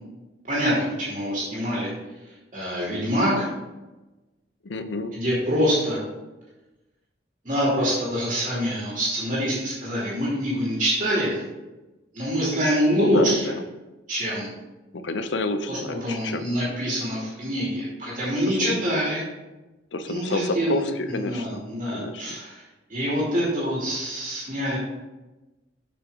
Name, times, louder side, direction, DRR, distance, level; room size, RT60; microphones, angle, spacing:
voice 1, 0.5-1.9 2.5-3.5 5.1-6.0 7.4-11.4 12.1-13.4 14.1-14.5 15.7-19.2 20.1-22.6 22.9-24.8, equal, 45° right, -7 dB, 2.7 m, -25 dB
voice 2, 4.6-5.1 12.9-13.6 14.9-16.5 18.4-18.8 19.9-21.6 21.9-22.4, left 2 dB, 80° left, 10 dB, 0.6 m, -29 dB
7.4 x 5.9 x 3.7 m, 1.1 s
head